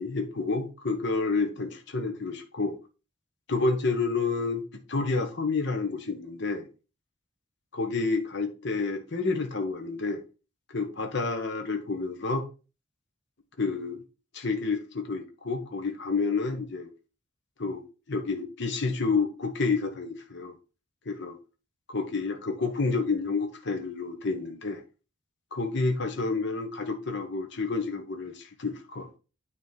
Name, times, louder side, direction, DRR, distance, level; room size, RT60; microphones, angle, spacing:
voice 1, 0.0-2.8 3.5-4.6 4.9-6.7 7.7-10.2 10.7-12.4 13.6-14.0 14.3-16.9 17.6-20.5 21.1-21.4 21.9-24.8 25.5-29.2, left 4 dB, 60° left, 1.2 m, -29 dB
9.5 x 3.9 x 5.6 m
head